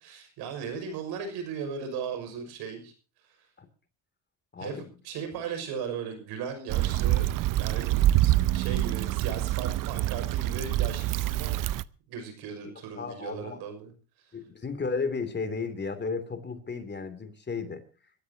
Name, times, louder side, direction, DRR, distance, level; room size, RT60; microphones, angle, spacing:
voice 1, 0.0-2.9 3.3-3.5 4.6-7.3 7.5-11.6 12.1-13.9 14.2-14.4, right 6 dB, 75° right, 7 dB, 6.1 m, -37 dB
voice 2, 4.5-4.9 12.6-13.6 14.3-17.8, left 4 dB, 25° left, 10 dB, 3.0 m, -34 dB
Stream / Traffic noise roadway noise / Trickle dribble, 6.7-11.8, right 15 dB, 55° right, 0.7 m, -26 dB
26.0 x 13.5 x 2.9 m, 0.36 s
supercardioid pair, 85°, 39 cm